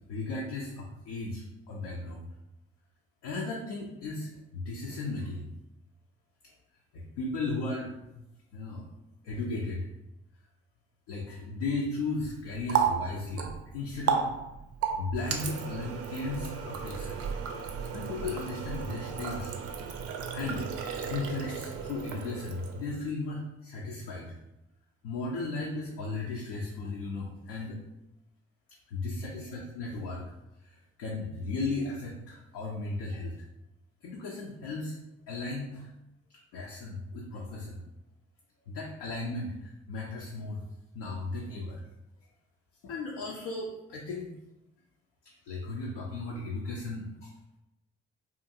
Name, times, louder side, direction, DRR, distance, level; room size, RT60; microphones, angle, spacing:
voice 1, 0.1-2.3 3.2-5.5 6.9-8.2 8.5-8.8 9.2-9.9 11.1-14.3 15.0-17.2 17.9-19.6 20.3-20.7 21.1-24.3 25.0-27.8 28.9-30.3 30.6-33.3 34.0-35.0 35.3-35.9 36.3-37.8 38.7-40.6 40.9-41.8 42.8-44.3 45.2-47.3, left 3 dB, 65° left, -2 dB, 0.5 m, -36 dB
Water tap faucet, 12.2-23.0, right 7 dB, 45° right, 0.4 m, -34 dB
2.5 x 2.5 x 2.7 m, 0.91 s
figure-of-eight pair, 40°, 32 cm